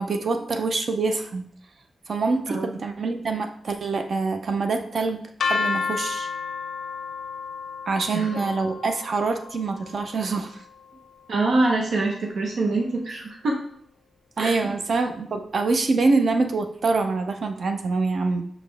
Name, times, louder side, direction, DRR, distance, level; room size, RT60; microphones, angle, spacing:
voice 1, 0.0-1.5 2.1-5.2 5.5-6.3 7.9-10.6 14.4-18.5, right 3 dB, 50° right, 7 dB, 0.6 m, -25 dB
sound 1, 5.4-11.3, left 5 dB, 75° left, 0.5 m, -32 dB
voice 2, 8.1-8.5 11.3-13.6 14.4-14.7, right 2 dB, 80° right, -1 dB, 1.0 m, -25 dB
5.9 x 5.0 x 3.4 m, 0.66 s
wide cardioid pair, 175°, 0 cm